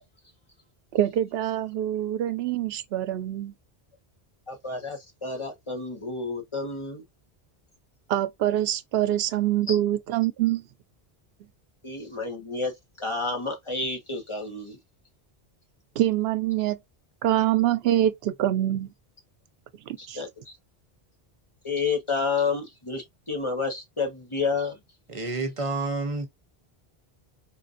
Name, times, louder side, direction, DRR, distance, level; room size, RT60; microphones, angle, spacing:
voice 1, 0.9-3.5 8.1-10.6 16.0-16.8 17.2-18.9 19.9-20.2, right 12 dB, 75° right, 0.8 m, -25 dB
voice 2, 4.5-7.0 9.7-9.8 11.8-14.8 20.0-20.6 21.6-24.8, left 4 dB, 30° left, 1.0 m, -30 dB
voice 3, 25.1-26.3, right 3 dB, 35° right, 0.8 m, -29 dB
3.5 x 2.5 x 2.5 m
omnidirectional pair, 1.0 m